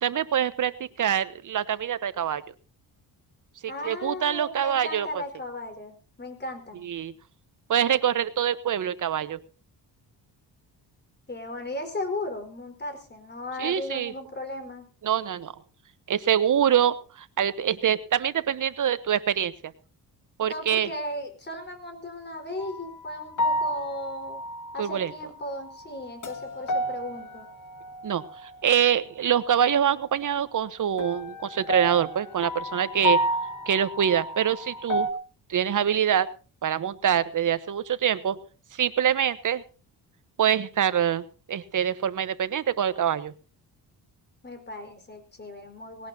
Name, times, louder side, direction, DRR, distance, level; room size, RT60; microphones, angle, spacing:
voice 1, 0.0-2.4 3.8-5.1 6.8-7.1 7.7-9.4 13.6-14.1 15.0-15.5 16.1-19.5 20.4-20.9 24.8-25.1 28.0-33.2 33.7-35.1 35.5-36.3 36.6-38.4 38.7-39.6 40.4-43.3, right 9 dB, 50° right, 14 dB, 1.1 m, -25 dB
voice 2, 3.7-6.8 11.3-14.9 20.4-24.4 24.7-27.5 44.4-46.1, left 1 dB, 25° left, 6 dB, 4.5 m, -36 dB
sound 1, 22.6-22.9 23.4-25.2 25.7-28.6 31.0-35.1, equal, 50° left, 1.8 m, -31 dB
19.5 x 18.0 x 2.8 m, 0.36 s
cardioid pair, 125°, 40 cm